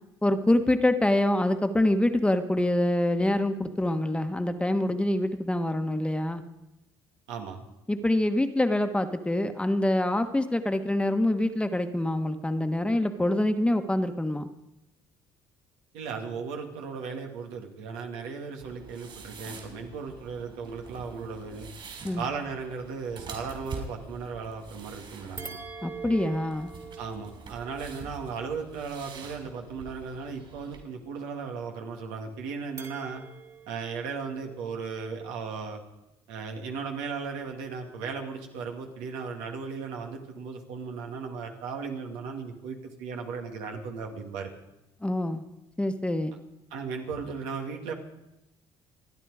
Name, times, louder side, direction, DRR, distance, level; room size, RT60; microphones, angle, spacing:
voice 1, 0.2-6.4 7.9-14.5 22.0-22.2 25.8-26.7 45.0-45.4 45.8-46.4, left 1 dB, 10° left, 8 dB, 1.3 m, -25 dB
voice 2, 7.3-7.6 15.9-21.7 22.2-25.6 27.0-33.2 33.7-35.8 36.3-44.5 46.7-47.9, right 5 dB, 90° right, 2 dB, 2.2 m, -36 dB
sound 1, 18.6-30.8, right 5 dB, 50° right, 4.6 m, -46 dB
sound 2, 25.4-29.8 32.8-35.3, right 5 dB, 30° right, 2.3 m, -44 dB
28.0 x 9.9 x 4.9 m, 0.90 s
supercardioid pair, 85°, 11 cm